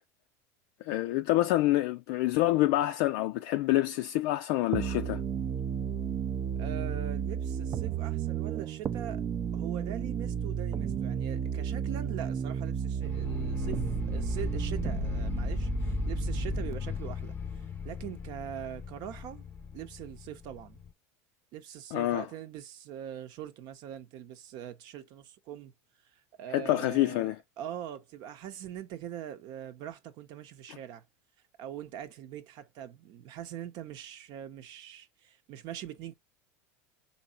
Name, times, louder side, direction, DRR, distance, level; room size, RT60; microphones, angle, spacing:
voice 1, 0.8-5.2 21.9-22.3 26.5-27.4, left 16 dB, 65° left, 0.4 m, -27 dB
sound 1, 4.7-16.7, right 7 dB, 35° right, 0.4 m, -32 dB
voice 2, 6.6-9.2 9.5-17.4 17.8-19.5 19.7-20.8 21.5-25.7 26.1-27.3 27.6-31.0 31.6-36.1, right 10 dB, 55° right, 0.8 m, -42 dB
sound 2, 13.0-20.9, left 6 dB, 20° left, 0.6 m, -37 dB
3.9 x 2.8 x 4.3 m
hypercardioid pair, 100°, 8 cm